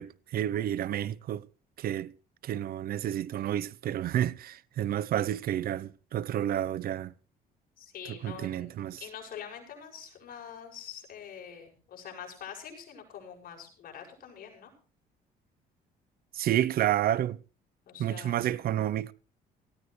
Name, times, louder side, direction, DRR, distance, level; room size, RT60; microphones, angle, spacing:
voice 1, 0.0-1.4 1.8-2.1 2.4-7.1 8.1-9.0 16.3-17.4 18.0-19.1, right 11 dB, 60° right, 0.8 m, -30 dB
voice 2, 7.8-14.7 17.9-18.6, left 8 dB, 60° left, 7.5 m, -45 dB
18.5 x 16.5 x 3.3 m
cardioid pair, 110°, 17 cm